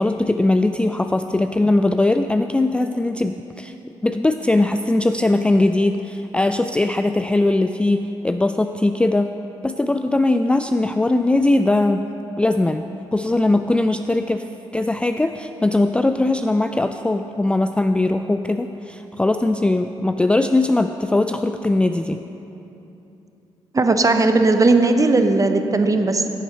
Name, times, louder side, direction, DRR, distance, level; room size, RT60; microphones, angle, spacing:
voice 1, 0.0-3.7 4.0-9.3 9.6-12.1 12.4-12.9 13.1-14.4 14.7-22.2, left 2 dB, 10° left, 7 dB, 0.3 m, -20 dB
voice 2, 23.7-26.3, right 3 dB, 25° right, 7 dB, 0.8 m, -17 dB
11.5 x 7.1 x 4.3 m, 3.0 s
hypercardioid pair, 45°, 13 cm